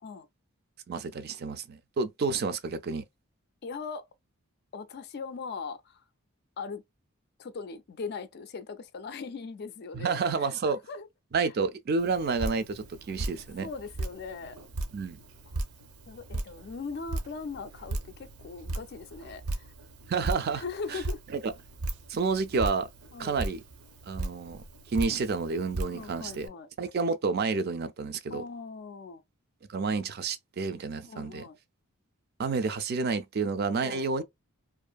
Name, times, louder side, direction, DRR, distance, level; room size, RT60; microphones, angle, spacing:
voice 1, 0.9-3.0 9.9-10.8 11.3-13.7 14.9-15.2 20.1-20.6 20.9-21.0 21.3-21.5 22.1-22.9 23.2-23.6 24.1-24.6 24.9-26.5 26.8-28.4 29.7-31.4 32.4-34.2, right 4 dB, 45° right, 0.3 m, -30 dB
voice 2, 3.6-4.0 4.7-6.0 6.6-6.8 7.4-11.1 11.3-11.5 13.6-14.6 16.1-19.7 20.5-21.2 23.1-23.4 25.9-26.7 28.3-29.2 31.1-31.6 33.8-34.0, left 4 dB, 45° left, 0.3 m, -40 dB
Drip, 12.0-26.5, right 2 dB, 85° right, 0.6 m, -38 dB
2.6 x 2.5 x 2.2 m
head